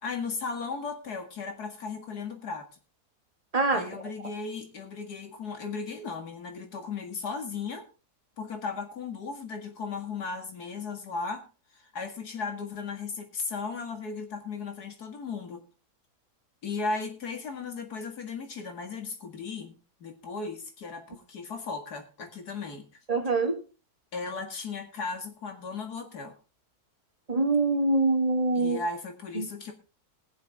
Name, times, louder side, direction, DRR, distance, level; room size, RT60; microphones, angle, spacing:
voice 1, 0.0-2.7 3.7-7.9 8.4-11.5 11.7-15.6 16.6-19.8 20.0-22.9 24.1-26.4 28.6-29.7, left 4 dB, 80° left, 2.5 m, -36 dB
voice 2, 3.5-3.8 23.1-23.6 27.3-28.8 29.4-29.5, right 3 dB, 25° right, 1.8 m, -24 dB
21.0 x 7.2 x 3.6 m
omnidirectional pair, 1.6 m